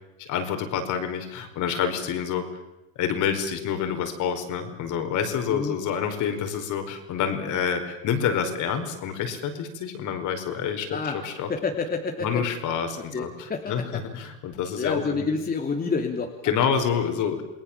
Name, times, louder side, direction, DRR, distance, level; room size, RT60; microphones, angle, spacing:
voice 1, 0.2-2.5 2.9-11.5 12.2-15.3 16.4-17.4, left 7 dB, 50° left, 6 dB, 4.8 m, -28 dB
voice 2, 10.9-11.2 11.5-12.5 13.1-14.0 14.8-16.3, left 4 dB, 20° left, 3 dB, 2.9 m, -28 dB
28.5 x 20.0 x 7.4 m, 0.95 s
hypercardioid pair, 100°, 39 cm